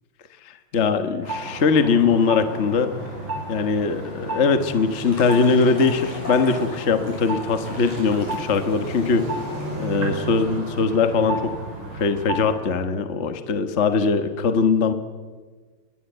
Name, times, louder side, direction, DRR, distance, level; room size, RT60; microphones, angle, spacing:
voice 1, 0.4-2.9 3.5-9.3 9.8-11.5 11.9-14.9, left 5 dB, 55° left, 8 dB, 0.7 m, -21 dB
sound 1, 1.2-12.6, right 2 dB, 40° right, 7.0 m, -32 dB
sound 2, 4.6-9.8, left 2 dB, 85° left, 8.5 m, -40 dB
28.5 x 21.0 x 8.0 m, 1.4 s
omnidirectional pair, 3.4 m